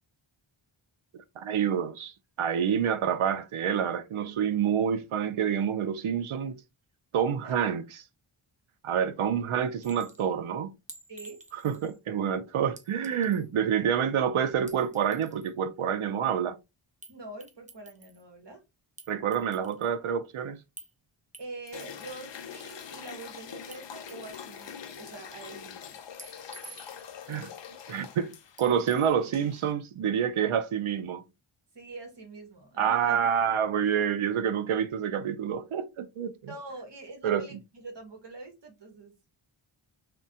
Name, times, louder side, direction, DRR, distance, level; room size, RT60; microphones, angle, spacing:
voice 1, 1.1-6.6 7.1-7.8 8.8-10.7 11.6-16.6 19.1-20.6 27.3-27.5 27.9-31.2 32.8-36.3 37.2-37.4, right 8 dB, 75° right, 0.5 m, -28 dB
Chink clink, 9.8-10.2 10.9-12.0 12.8-13.5 14.5-15.5 17.0-17.2 17.4-18.2 19.0-19.9 20.8-20.9 21.3-22.2 23.7-23.8 24.1-24.9 26.2-27.2 28.6-29.1, right 3 dB, 15° right, 0.5 m, -50 dB
voice 2, 11.1-11.4 17.1-18.6 21.4-26.0 31.7-33.2 33.8-34.0 36.5-39.2, right 2 dB, 55° right, 1.1 m, -45 dB
sound 1, 21.7-29.7, left 7 dB, 60° left, 0.5 m, -44 dB
3.1 x 2.2 x 2.7 m
wide cardioid pair, 65°, 49 cm